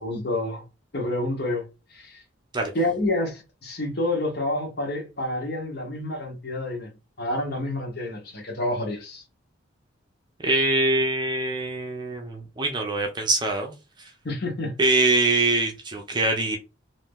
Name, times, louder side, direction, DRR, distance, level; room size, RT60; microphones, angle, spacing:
voice 1, 0.0-0.6 0.9-1.6 1.9-2.2 2.7-6.9 7.2-9.2 14.2-14.8, left 1 dB, 50° left, 1.1 m, -28 dB
voice 2, 10.4-13.7 14.8-16.6, right 2 dB, 20° right, 0.6 m, -23 dB
2.7 x 2.6 x 3.6 m
head